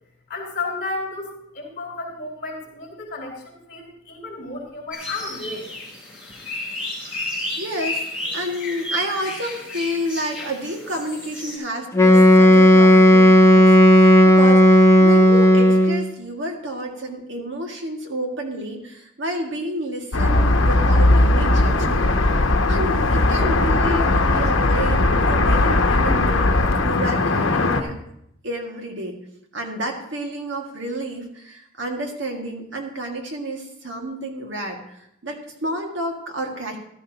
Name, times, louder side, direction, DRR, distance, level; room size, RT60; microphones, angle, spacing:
voice 1, 0.3-5.7, left 3 dB, 45° left, -1 dB, 3.6 m, -32 dB
sound 1, 4.9-11.6, left 1 dB, 5° right, 4.2 m, -32 dB
voice 2, 7.6-8.0 8.3-22.1 22.4-26.5 26.8-28.0 28.4-29.2 29.5-36.8, right 1 dB, 70° right, 2 dB, 2.0 m, -30 dB
Wind instrument woodwind instrument, 11.9-16.1, equal, 15° left, 0.6 m, -12 dB
sound 2, 20.1-27.8, left 2 dB, 80° left, 1.0 m, -18 dB
14.5 x 12.0 x 2.9 m, 0.77 s
head